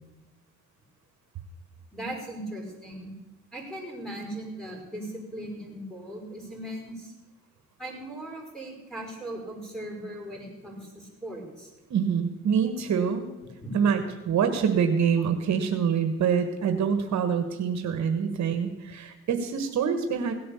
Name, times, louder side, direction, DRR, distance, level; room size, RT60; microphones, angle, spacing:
voice 1, 1.9-3.1 3.5-7.1 7.8-11.7 13.6-13.8, right 1 dB, ahead, -2 dB, 5.3 m, -38 dB
voice 2, 11.9-13.3 13.7-20.3, right 7 dB, 65° right, 7 dB, 1.4 m, -25 dB
17.0 x 8.7 x 6.9 m, 1.1 s
cardioid pair, 90°, 30 cm